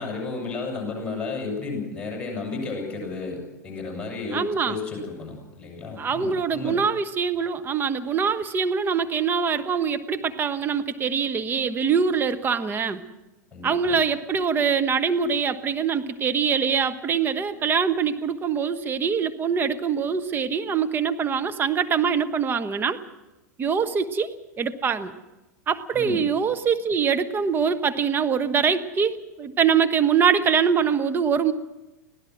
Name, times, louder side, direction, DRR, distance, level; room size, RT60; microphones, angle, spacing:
voice 1, 0.0-6.8 13.5-14.0 25.9-26.2, left 3 dB, 10° left, 0 dB, 7.7 m, -33 dB
voice 2, 4.3-4.8 6.0-13.0 13.6-23.0 23.6-25.1 25.7-31.5, right 6 dB, 20° right, 11 dB, 1.1 m, -24 dB
25.0 x 17.0 x 6.2 m, 1.0 s
figure-of-eight pair, 90°, 10 cm